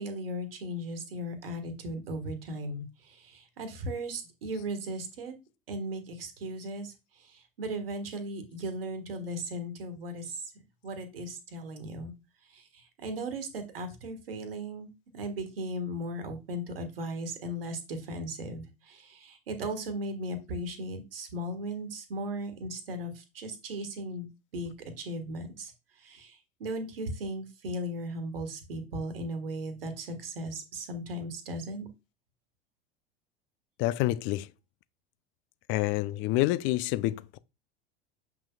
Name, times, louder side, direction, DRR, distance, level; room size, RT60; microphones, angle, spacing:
voice 1, 0.0-2.8 3.2-5.3 5.7-6.9 7.6-10.3 10.8-12.1 13.0-24.3 24.5-24.7 25.0-25.7 26.0-26.3 26.6-31.9, right 1 dB, 75° right, 1.5 m, -37 dB
voice 2, 33.8-34.5 35.7-37.4, left 16 dB, 40° left, 0.5 m, -28 dB
7.3 x 5.9 x 2.3 m
figure-of-eight pair, 80°, 29 cm